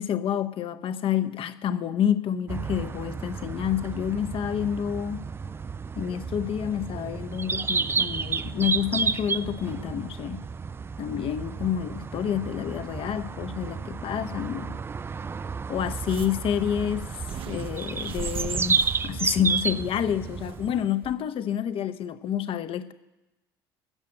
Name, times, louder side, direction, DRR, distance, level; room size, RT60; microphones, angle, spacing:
voice 1, 0.0-5.2 6.0-10.4 11.0-14.8 15.7-17.1 17.5-22.9, left 9 dB, 50° left, 11 dB, 0.8 m, -28 dB
sound 1, 2.5-20.9, right 5 dB, 20° right, 0.3 m, -31 dB
sound 2, 15.8-20.7 21.0-21.1, right 8 dB, 45° right, 0.8 m, -40 dB
12.5 x 7.5 x 7.7 m, 1.0 s
hypercardioid pair, 60°, 12 cm